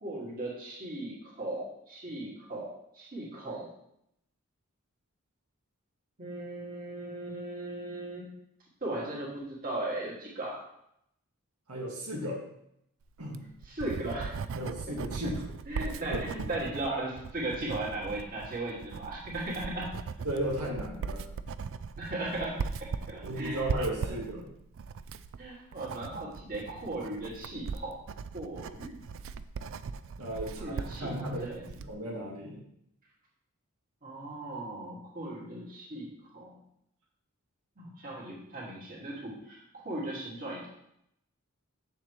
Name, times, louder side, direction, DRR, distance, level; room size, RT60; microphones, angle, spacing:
voice 1, 0.0-3.7 6.2-8.3 8.8-10.6 13.7-14.3 15.2-15.3 15.7-19.9 22.0-24.2 25.4-28.0 28.3-29.0 30.6-31.6 34.0-36.1 36.3-36.5 37.8-40.7, right 2 dB, 40° right, -5 dB, 2.3 m, -37 dB
voice 2, 11.7-12.4 13.2-13.5 14.6-15.5 15.8-16.4 20.2-21.2 23.2-24.5 30.2-31.5 31.8-32.6, right 1 dB, 90° right, -3 dB, 1.8 m, -35 dB
Writing, 13.2-31.9, right 5 dB, 60° right, 0.4 m, -39 dB
7.8 x 7.1 x 3.1 m, 0.77 s
head